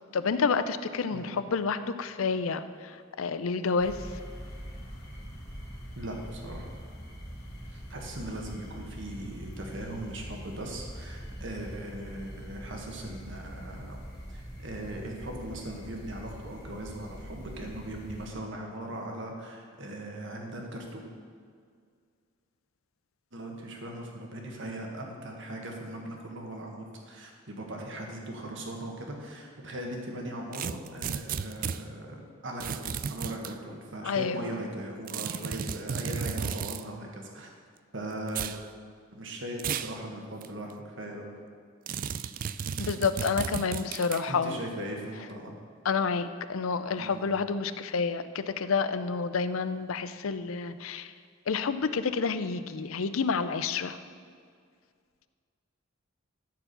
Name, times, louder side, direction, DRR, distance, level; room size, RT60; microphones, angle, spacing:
voice 1, 0.1-4.1 34.0-34.4 42.8-44.6 45.8-51.1 51.5-54.0, left 5 dB, 85° left, 12 dB, 0.5 m, -29 dB
voice 2, 1.1-1.4 5.9-6.7 7.6-14.0 14.3-21.1 23.3-37.5 37.9-38.5 39.1-41.3 44.3-45.5 47.0-47.3, right 1 dB, 65° right, 1 dB, 1.6 m, -39 dB
sound 1, 3.8-18.3, equal, 50° left, 2.9 m, -43 dB
sound 2, 30.5-31.8 32.6-33.5 35.1-36.8 38.3-38.6 39.6-40.0 40.4-40.5 41.9-44.3, right 7 dB, 40° right, 0.3 m, -34 dB
13.5 x 4.8 x 6.8 m, 2.1 s
head